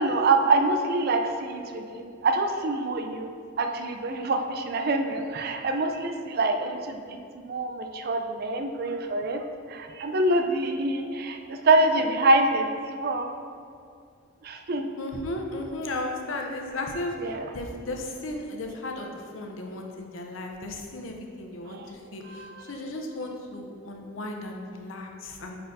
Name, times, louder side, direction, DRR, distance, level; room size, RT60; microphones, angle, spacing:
voice 1, 0.0-3.3 3.6-7.2 7.5-13.3 14.4-14.9 17.2-17.4 21.7-21.9 22.3-22.6, right 2 dB, 50° right, 5 dB, 0.5 m, -25 dB
voice 2, 15.0-25.6, left 2 dB, 85° left, 2 dB, 0.7 m, -35 dB
8.4 x 4.4 x 2.7 m, 2.4 s
head